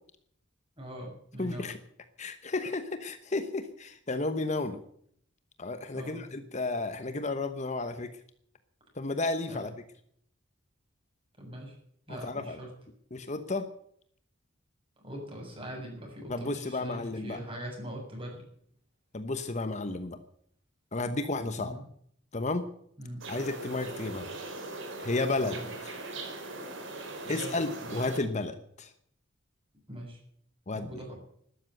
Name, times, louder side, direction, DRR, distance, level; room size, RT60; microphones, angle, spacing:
voice 1, 0.8-1.7 5.9-6.2 9.5-9.7 11.4-11.8 12.1-12.7 15.0-18.4 21.6-21.8 23.0-23.2 25.4-25.7 27.2-27.9 29.9-30.2 30.7-31.2, equal, 30° right, 0 dB, 7.3 m, -42 dB
voice 2, 1.4-1.8 2.2-4.8 5.6-8.1 9.0-9.7 12.1-12.6 13.1-13.7 16.3-17.4 19.1-20.2 20.9-21.7 22.3-22.7 23.3-24.3 25.0-25.6 27.3-28.9 30.7-30.9, left 2 dB, 35° left, 10 dB, 1.1 m, -32 dB
sound 1, 23.2-28.2, right 2 dB, 70° right, 4.3 m, -40 dB
13.5 x 12.5 x 7.8 m, 0.66 s
head